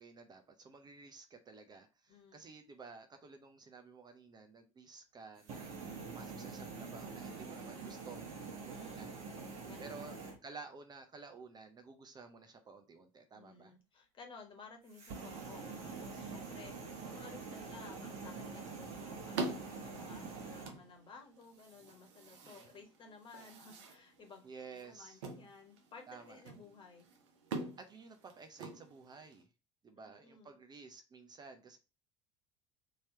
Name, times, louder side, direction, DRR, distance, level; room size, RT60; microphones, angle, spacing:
voice 1, 0.0-5.7 6.1-8.3 8.6-9.1 9.8-13.7 22.4-22.7 24.4-25.2 26.1-26.4 27.8-29.5 29.8-31.8, right 4 dB, 25° right, 0.6 m, -53 dB
voice 2, 2.1-2.5 8.7-9.3 9.6-10.2 13.3-27.1 29.9-30.5, left 4 dB, 35° left, 1.4 m, -56 dB
sound 1, 5.4-10.4 14.9-20.7, right 4 dB, 55° right, 1.2 m, -45 dB
sound 2, 19.2-29.4, right 3 dB, 70° right, 0.8 m, -46 dB
3.1 x 2.9 x 4.3 m
figure-of-eight pair, 65°, 15 cm